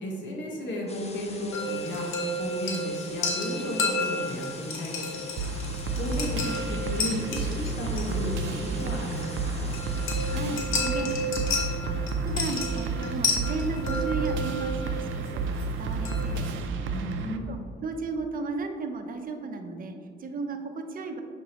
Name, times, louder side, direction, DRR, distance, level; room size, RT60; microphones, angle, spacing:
voice 1, 0.0-9.7 16.8-17.5, left 1 dB, 70° left, -1 dB, 1.4 m, -34 dB
sound 1, 0.9-10.6, left 3 dB, 30° left, 0.9 m, -45 dB
sound 2, 1.5-16.4, left 2 dB, 85° left, 1.2 m, -33 dB
sound 3, 5.4-17.4, right 3 dB, 75° right, 0.5 m, -31 dB
voice 2, 10.3-16.9 17.5-21.2, right 4 dB, 45° right, 5 dB, 0.8 m, -35 dB
6.6 x 5.1 x 3.0 m, 2.2 s
cardioid pair, 90°, 20 cm